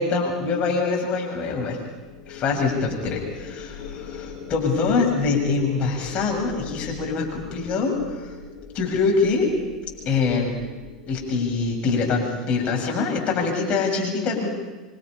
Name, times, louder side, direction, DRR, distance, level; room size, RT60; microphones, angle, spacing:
voice 1, 0.0-1.8 2.3-8.3 8.7-9.5 10.1-10.5 11.1-14.5, left 4 dB, 35° left, 0 dB, 7.0 m, -24 dB
sound 1, 1.9-12.4, left 6 dB, 60° left, 4.8 m, -40 dB
27.5 x 24.5 x 5.6 m, 1.2 s
figure-of-eight pair, 80°, 3 cm